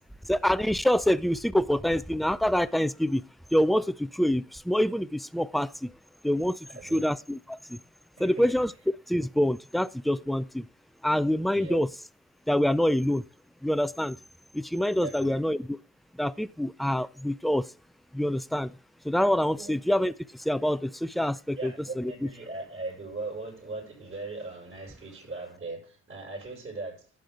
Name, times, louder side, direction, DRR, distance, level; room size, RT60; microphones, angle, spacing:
voice 1, 0.3-3.2 3.5-5.9 6.2-6.6 6.9-7.8 8.2-8.7 9.1-10.7 11.0-11.9 12.5-13.3 13.6-14.2 14.5-15.8 16.2-17.7 18.1-18.8 19.0-22.1, equal, ahead, 0.4 m, -26 dB
voice 2, 6.6-7.1 8.2-8.5 11.4-11.8 15.0-15.4 19.5-19.8 21.6-27.0, right 3 dB, 40° right, 6.2 m, -39 dB
11.5 x 8.0 x 3.7 m
cardioid pair, 90°, 30 cm